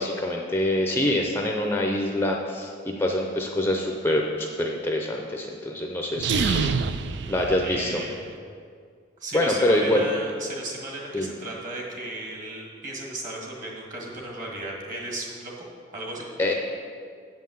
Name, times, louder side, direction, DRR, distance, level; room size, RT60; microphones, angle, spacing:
voice 1, 0.0-2.7 3.0-6.7 7.3-8.0 9.3-10.0 11.1-11.3 16.4-16.5, left 1 dB, 10° left, 0 dB, 0.5 m, -25 dB
sound 1, 6.1-8.3, right 5 dB, 60° right, 0.4 m, -27 dB
voice 2, 7.6-8.2 9.2-15.5 15.9-16.2, right 2 dB, 40° right, -2 dB, 1.9 m, -35 dB
7.9 x 5.7 x 7.7 m, 2.2 s
head